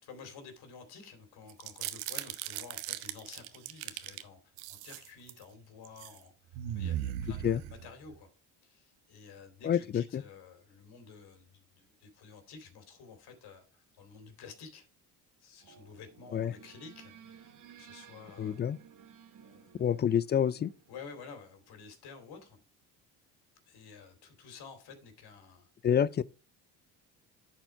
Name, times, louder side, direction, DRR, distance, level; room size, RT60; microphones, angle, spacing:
voice 1, 0.0-4.4 4.7-8.3 8.6-14.9 15.4-18.6 19.4-19.9 20.9-22.6 23.7-25.7, left 5 dB, 65° left, 2.6 m, -51 dB
sound 1, 1.5-4.2 4.6-5.4 5.8-6.2 6.5-8.1, right 12 dB, 90° right, 0.8 m, -38 dB
voice 2, 9.6-10.2 16.3-16.5 18.4-18.8 19.8-20.7 25.8-26.2, left 9 dB, 25° left, 0.3 m, -28 dB
sound 2, 15.6-21.8, right 8 dB, 50° right, 1.2 m, -56 dB
10.0 x 4.5 x 4.5 m
supercardioid pair, 80°, 40 cm